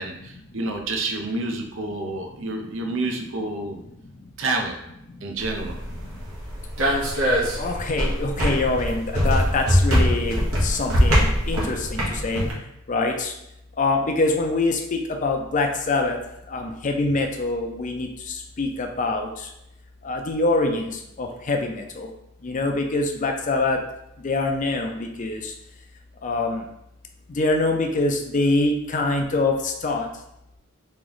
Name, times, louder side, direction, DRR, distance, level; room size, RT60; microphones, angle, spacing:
voice 1, 0.0-3.8 4.4-4.8 5.2-5.8, right 2 dB, 65° right, 3 dB, 0.6 m, -28 dB
sound 1, 5.4-12.5, equal, 85° right, 1.1 m, -23 dB
voice 2, 7.6-12.4 12.9-13.3 13.8-16.2 16.5-19.5 20.0-22.1 22.4-23.8 24.2-25.5 26.2-26.7 27.3-30.1, left 2 dB, 35° left, 3 dB, 0.5 m, -25 dB
3.1 x 3.0 x 3.8 m, 0.82 s
head